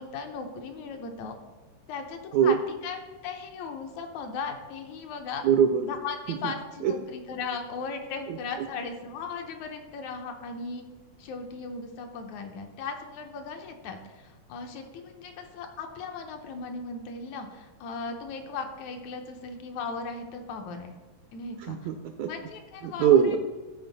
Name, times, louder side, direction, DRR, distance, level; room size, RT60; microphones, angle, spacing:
voice 1, 0.0-1.3 1.9-2.6 2.8-3.0 3.2-5.4 5.8-10.8 11.2-21.0 21.3-21.8 22.3-23.4, left 4 dB, 75° left, 4 dB, 2.0 m, -37 dB
voice 2, 5.4-5.8 6.3-6.5 6.8-6.9 8.3-8.4 21.6-22.3 22.8-23.4, right 8 dB, 80° right, 6 dB, 1.6 m, -22 dB
13.0 x 4.4 x 4.0 m, 1.3 s
omnidirectional pair, 3.6 m